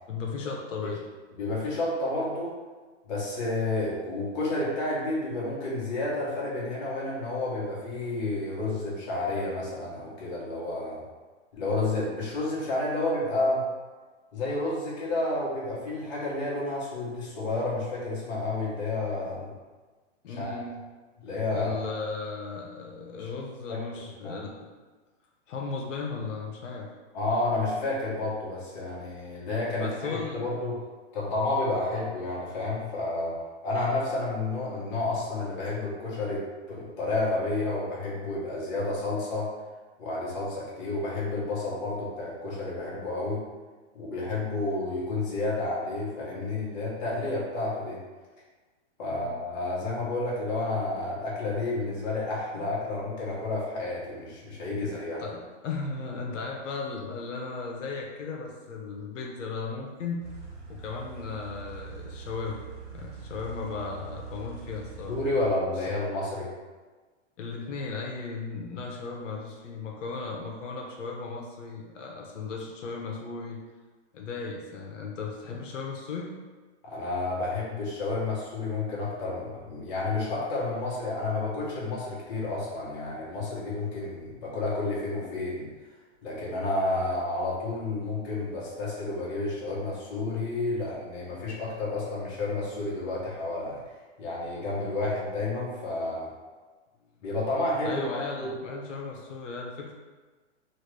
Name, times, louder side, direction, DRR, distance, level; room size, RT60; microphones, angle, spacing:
voice 1, 0.1-1.0 20.2-20.8 21.3-24.5 25.5-26.9 29.8-30.4 49.0-49.3 52.5-52.7 54.8-54.9 55.2-60.3 60.7-62.6 62.9-65.2 67.4-73.6 74.1-76.3 97.8-99.9, left 4 dB, 85° left, 0 dB, 0.7 m, -36 dB
voice 2, 1.3-2.6 3.1-11.0 11.5-13.6 14.3-19.5 20.4-20.6 21.2-21.9 23.2-23.3 23.7-24.4 27.1-30.8 31.1-33.3 33.6-39.5 40.0-43.4 43.9-48.0 49.0-55.2 65.1-66.5 76.8-85.7 86.2-93.8 94.2-96.3 97.2-98.5, left 2 dB, 35° left, -6 dB, 1.0 m, -30 dB
sound 1, 60.2-65.5, right 5 dB, 65° right, 1.4 m, -43 dB
3.1 x 2.4 x 3.2 m, 1.3 s
hypercardioid pair, 160°, 36 cm